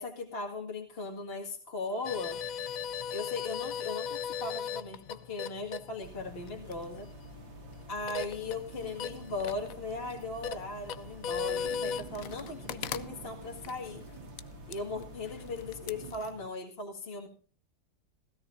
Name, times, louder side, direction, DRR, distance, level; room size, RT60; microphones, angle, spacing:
voice 1, 0.0-2.4 3.1-7.1 7.9-14.0 14.7-17.3, left 3 dB, 30° left, 0 dB, 2.2 m, -38 dB
sound 1, 2.0-16.5, left 8 dB, 60° left, 0.9 m, -39 dB
sound 2, 6.0-16.2, right 3 dB, 80° right, 2.4 m, -48 dB
17.0 x 16.5 x 2.6 m, 0.41 s
omnidirectional pair, 2.1 m